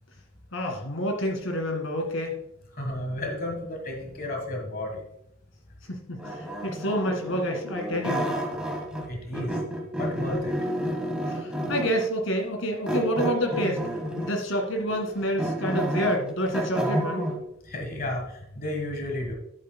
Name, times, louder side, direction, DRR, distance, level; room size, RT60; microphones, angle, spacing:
voice 1, 0.5-2.4 5.9-8.3 11.3-13.8 14.2-17.2, equal, 80° left, 3 dB, 2.0 m, -28 dB
voice 2, 2.8-5.0 9.1-9.5 10.0-10.5 17.7-18.2 18.6-19.3, left 1 dB, 45° left, 3 dB, 1.5 m, -32 dB
sound 1, 6.2-9.1 9.3-12.0 12.9-14.4 14.9-17.4, equal, 5° right, 1.5 m, -30 dB
11.0 x 8.2 x 2.2 m, 0.77 s
head